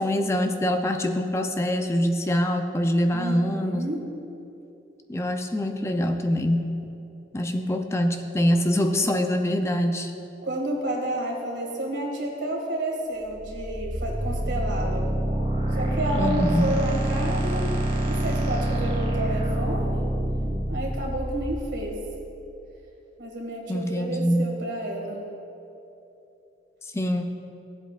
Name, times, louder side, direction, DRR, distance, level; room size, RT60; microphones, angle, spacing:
voice 1, 0.0-3.9 5.1-6.7 7.3-10.1 16.1-16.7 23.7-24.5 26.8-27.3, equal, 15° left, 6 dB, 0.4 m, -24 dB
voice 2, 3.1-4.0 10.4-15.1 15.7-17.7 18.1-20.1 20.7-22.0 23.2-25.2, right 1 dB, 90° right, 0 dB, 1.9 m, -30 dB
sound 1, 13.3-22.2, right 1 dB, 35° right, 1.7 m, -27 dB
15.5 x 8.0 x 2.3 m, 2.9 s
head